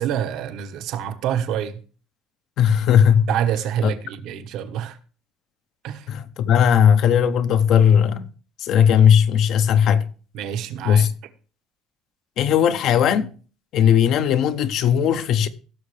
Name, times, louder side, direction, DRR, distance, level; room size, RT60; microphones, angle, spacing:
voice 1, 0.0-1.8 3.3-5.0 5.8-6.1 10.3-11.1, right 9 dB, 65° right, 1.2 m, -26 dB
voice 2, 2.6-3.3 3.8-3.9 6.1-8.3 8.6-10.1 10.8-11.1 12.4-13.3 13.7-15.5, left 8 dB, 55° left, 0.8 m, -17 dB
16.5 x 6.5 x 3.3 m
cardioid pair, 135°, 0 cm